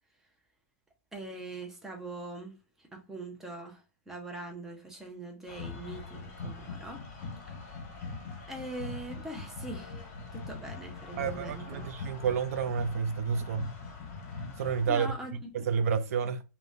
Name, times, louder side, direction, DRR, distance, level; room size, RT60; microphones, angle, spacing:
voice 1, 1.1-7.0 7.6-7.7 8.5-10.0 10.3-11.9 14.9-15.3 16.2-16.3, right 2 dB, 5° right, 0.5 m, -42 dB
sound 1, 5.5-14.9, left 4 dB, 30° left, 1.2 m, -42 dB
voice 2, 11.2-13.8 14.6-15.1 15.5-16.4, right 6 dB, 65° right, 0.4 m, -30 dB
3.5 x 2.2 x 2.5 m
supercardioid pair, 170°, 9 cm